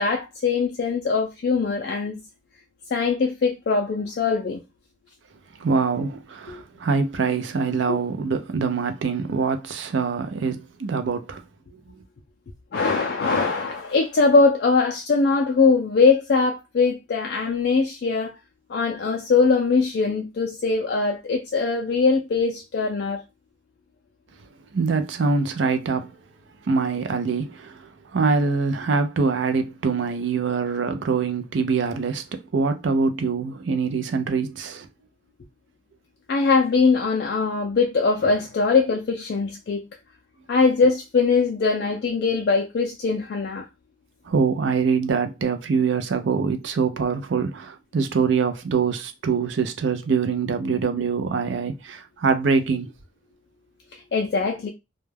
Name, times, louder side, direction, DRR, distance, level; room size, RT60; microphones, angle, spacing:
voice 1, 0.0-2.2 2.9-4.6 12.7-18.3 18.7-23.2 36.3-39.8 40.5-43.7 54.1-54.7, left 4 dB, 55° left, 0.3 m, -21 dB
voice 2, 5.6-11.4 24.7-26.1 26.6-34.9 44.3-52.9, right 5 dB, 75° right, 0.4 m, -24 dB
2.2 x 2.2 x 3.2 m
head